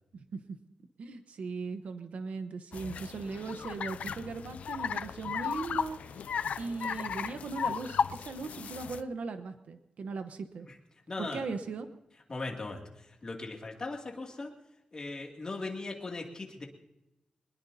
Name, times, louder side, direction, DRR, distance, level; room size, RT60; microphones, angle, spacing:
voice 1, 1.0-6.2 6.6-10.7 11.2-11.9, right 4 dB, 85° right, 8 dB, 1.0 m, -38 dB
sound 1, 2.7-9.0, left 7 dB, 90° left, 0.5 m, -35 dB
voice 2, 11.1-11.5 12.3-14.5 14.9-16.7, left 3 dB, 35° left, 1 dB, 2.5 m, -39 dB
23.5 x 21.0 x 2.8 m, 0.95 s
wide cardioid pair, 145°, 2 cm